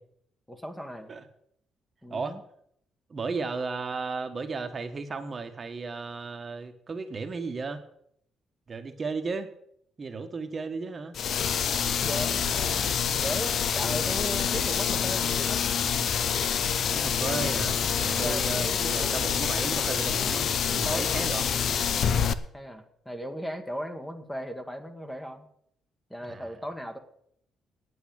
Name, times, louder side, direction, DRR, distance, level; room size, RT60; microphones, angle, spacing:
voice 1, 0.5-1.2 2.0-2.4 12.0-12.9 13.2-15.6 17.8-19.3 20.7-21.5 22.5-25.5 26.1-27.0, equal, 10° left, 6 dB, 1.5 m, -37 dB
voice 2, 2.1-2.4 3.1-7.8 8.7-9.5 10.0-11.2 16.9-20.5 20.7-21.4 26.2-26.6, right 4 dB, 35° right, 6 dB, 1.3 m, -34 dB
sound 1, 11.1-22.3, left 7 dB, 60° left, 0.7 m, -27 dB
9.1 x 8.5 x 8.7 m, 0.72 s
cardioid pair, 90°, 0 cm